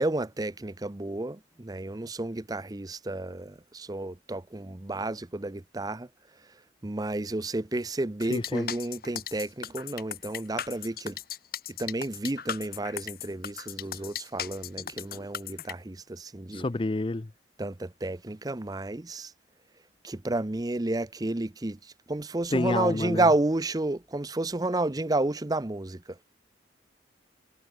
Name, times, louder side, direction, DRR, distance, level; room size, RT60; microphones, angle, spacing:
voice 1, 0.0-6.1 6.8-11.2 11.7-16.6 17.6-19.3 20.0-26.2, right 2 dB, 20° right, 0.6 m, -31 dB
sound 1, 8.2-15.7, left 9 dB, 55° left, 2.6 m, -37 dB
voice 2, 8.3-8.7 16.5-17.3 22.5-23.2, left 2 dB, 30° left, 0.5 m, -28 dB
head